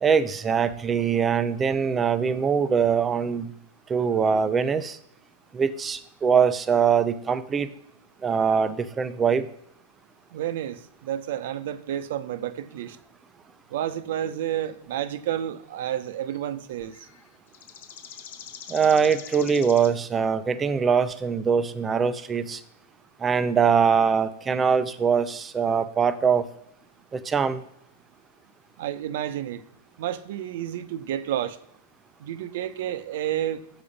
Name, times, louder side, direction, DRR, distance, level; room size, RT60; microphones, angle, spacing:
voice 1, 0.0-3.5 3.9-5.0 5.5-7.7 8.2-9.5 18.7-22.6 23.2-26.5 27.1-27.6, right 6 dB, 15° right, 12 dB, 0.5 m, -22 dB
voice 2, 10.3-13.0 13.7-17.1 28.8-29.6 30.0-31.6 32.2-33.6, right 11 dB, 60° right, 12 dB, 0.7 m, -30 dB
sound 1, 16.3-16.4 16.9-20.0, left 9 dB, 60° left, 0.8 m, -43 dB
7.1 x 4.8 x 5.2 m, 0.76 s
supercardioid pair, 145°, 0 cm